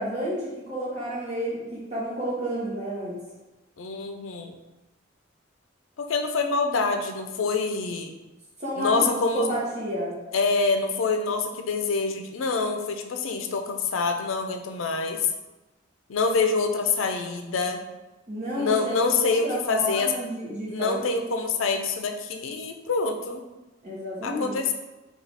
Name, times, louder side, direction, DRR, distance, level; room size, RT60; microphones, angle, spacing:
voice 1, 0.0-3.2 8.6-10.2 18.3-18.7 19.1-21.0 23.8-24.5, equal, 35° right, -6 dB, 0.8 m, -31 dB
voice 2, 3.8-4.5 6.0-8.1 8.8-9.5 10.3-15.3 16.1-17.8 18.6-20.1 20.7-23.4 24.2-24.7, left 4 dB, 80° left, 5 dB, 0.5 m, -26 dB
4.5 x 2.3 x 4.0 m, 1.1 s
head